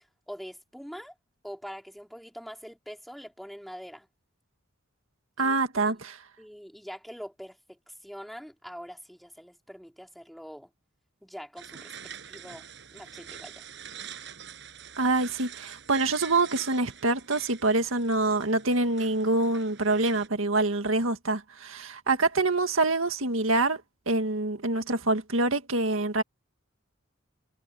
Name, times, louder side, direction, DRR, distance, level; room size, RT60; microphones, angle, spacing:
voice 1, 0.3-1.1 1.4-4.1 5.4-6.0 6.4-10.7 11.2-12.7 12.9-13.6, equal, ahead, 3.3 m, -44 dB
voice 2, 5.4-6.2 15.0-26.2, right 2 dB, 85° right, 1.9 m, -26 dB
sound 1, 11.6-20.3, right 8 dB, 60° right, 6.1 m, -45 dB
head